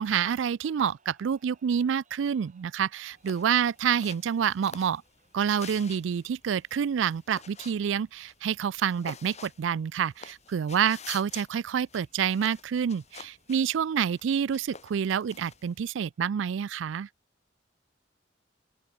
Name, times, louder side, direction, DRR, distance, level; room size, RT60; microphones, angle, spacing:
voice 1, 0.0-5.0 5.3-17.1, right 8 dB, 90° right, 0.4 m, -28 dB
sound 1, 0.9-17.0, right 5 dB, 45° right, 7.0 m, -70 dB
sound 2, 3.1-15.9, left 6 dB, 40° left, 4.8 m, -49 dB
open air
head